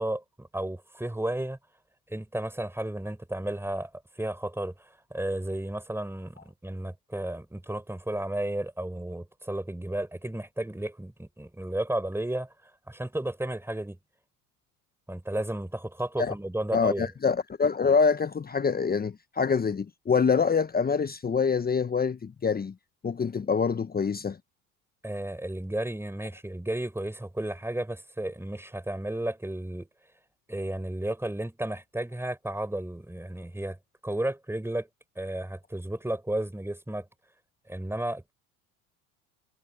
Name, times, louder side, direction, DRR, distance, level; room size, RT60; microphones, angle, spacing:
voice 1, 0.0-1.6 2.1-3.9 4.2-12.5 12.9-14.0 15.1-17.1 25.0-29.9 30.5-33.8 34.0-34.9 35.2-37.0 37.7-38.3, right 1 dB, 5° right, 4.6 m, -33 dB
voice 2, 16.7-22.7 23.0-24.4, left 5 dB, 20° left, 1.2 m, -25 dB
hypercardioid pair, 75°, 43 cm